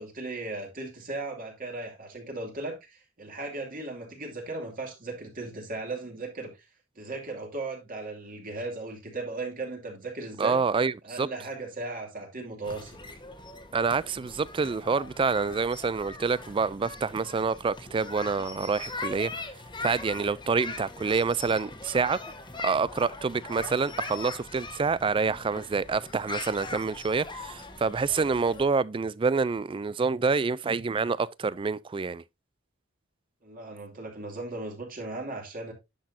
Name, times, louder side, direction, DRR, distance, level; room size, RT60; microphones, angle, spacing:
voice 1, 0.0-6.5 7.0-10.6 11.0-13.0 33.4-35.7, right 2 dB, 45° right, 2.6 m, -37 dB
voice 2, 10.4-11.3 13.7-19.3 19.8-22.2 22.6-32.2, right 4 dB, 25° right, 0.3 m, -27 dB
sound 1, 12.6-28.6, left 3 dB, 25° left, 1.3 m, -41 dB
10.0 x 6.3 x 2.7 m
head